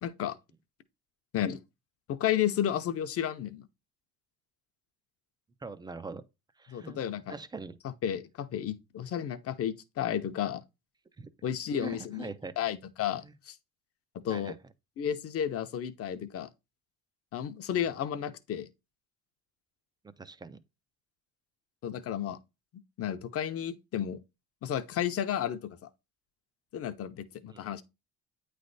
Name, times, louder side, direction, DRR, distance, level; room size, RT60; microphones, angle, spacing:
voice 1, 0.0-0.4 1.3-1.6 2.1-3.6 6.7-7.4 7.8-10.6 11.4-12.3 12.6-13.6 14.1-14.5 15.0-16.5 17.3-18.7 21.8-22.4 23.0-24.2 24.6-25.7 26.7-27.8, left 10 dB, 40° left, 0.6 m, -32 dB
voice 2, 5.6-6.2 6.6-7.0 7.3-7.8 11.2-11.3 11.8-12.5 13.2-13.3 14.3-14.5 17.7-17.8 20.0-20.6 27.5-27.6, right 3 dB, 10° right, 0.3 m, -42 dB
8.9 x 3.3 x 3.9 m
cardioid pair, 140°, 36 cm